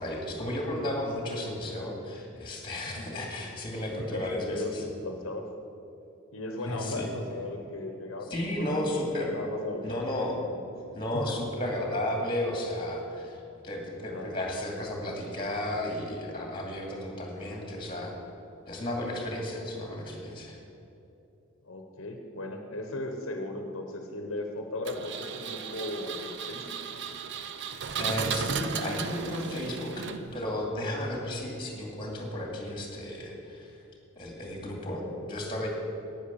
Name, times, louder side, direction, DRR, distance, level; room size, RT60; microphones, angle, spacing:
voice 1, 0.0-4.8 6.6-7.1 8.3-9.3 9.8-10.4 10.9-18.1 18.7-20.6 28.0-33.8 34.2-35.7, left 1 dB, 25° left, 0 dB, 2.3 m, -33 dB
voice 2, 4.0-5.4 6.3-10.0 10.5-10.6 11.1-11.4 14.0-14.3 21.6-26.8, left 2 dB, 70° left, 4 dB, 1.0 m, -37 dB
Engine, 24.8-30.5, right 6 dB, 55° right, 0.6 m, -35 dB
10.0 x 9.5 x 7.0 m, 2.9 s
head